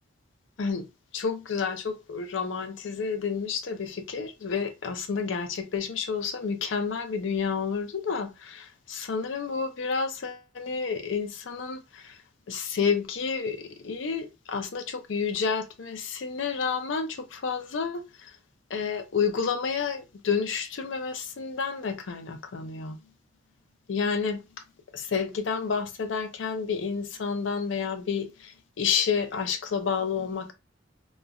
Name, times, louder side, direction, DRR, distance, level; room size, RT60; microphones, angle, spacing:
voice 1, 1.1-12.2 12.5-18.3 18.7-23.0 23.9-24.4 24.9-30.5, left 5 dB, 70° left, 0.5 m, -30 dB
3.0 x 2.4 x 2.3 m
head